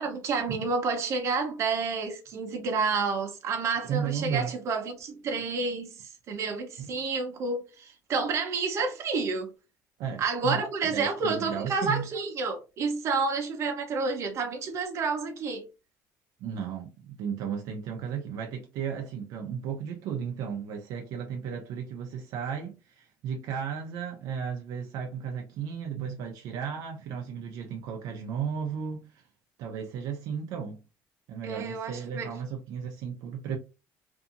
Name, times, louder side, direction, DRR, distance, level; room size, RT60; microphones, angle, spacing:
voice 1, 0.0-9.5 10.2-15.6 31.4-32.3, right 4 dB, 50° right, 0.8 m, -30 dB
voice 2, 3.8-4.5 6.8-6.9 10.0-10.6 10.9-12.0 16.4-29.2 29.6-30.8 31.3-33.6, right 7 dB, 75° right, 0.5 m, -34 dB
2.7 x 2.6 x 2.5 m
cardioid pair, 135°, 6 cm